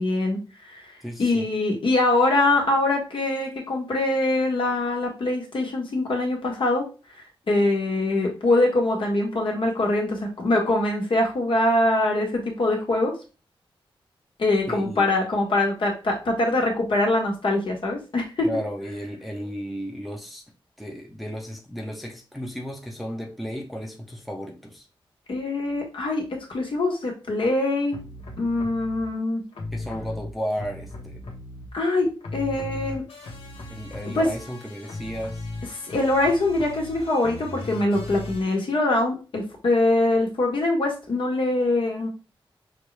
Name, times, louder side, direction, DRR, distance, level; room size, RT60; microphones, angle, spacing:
voice 1, 0.0-0.8 1.2-6.9 7.5-13.1 14.4-18.5 25.3-28.0 28.4-29.4 31.7-33.0 34.0-34.3 35.9-42.1, left 2 dB, 65° left, 1.5 m, -23 dB
voice 2, 1.0-1.5 14.7-15.1 18.4-20.4 20.8-24.9 29.7-31.2 33.7-35.5, equal, ahead, 0.7 m, -34 dB
sound 1, 27.9-29.0 29.5-31.9 32.2-38.6, left 2 dB, 85° left, 1.2 m, -37 dB
6.0 x 2.6 x 3.3 m
wide cardioid pair, 135°, 9 cm